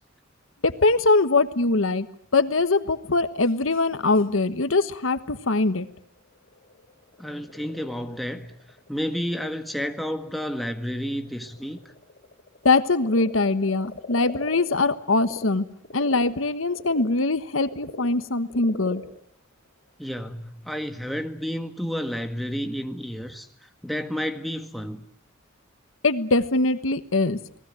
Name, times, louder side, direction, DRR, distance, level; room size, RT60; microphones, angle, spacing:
voice 1, 0.6-2.1 2.3-5.9 12.6-15.7 15.9-19.0 26.0-27.4, left 3 dB, 85° left, 12 dB, 1.3 m, -22 dB
Frog, 2.8-15.4 15.8-20.5, left 2 dB, 45° left, 6.1 m, -44 dB
voice 2, 7.2-8.5 8.9-11.8 20.0-25.1, equal, ahead, 5 dB, 1.7 m, -31 dB
29.0 x 19.5 x 9.0 m, 0.67 s
head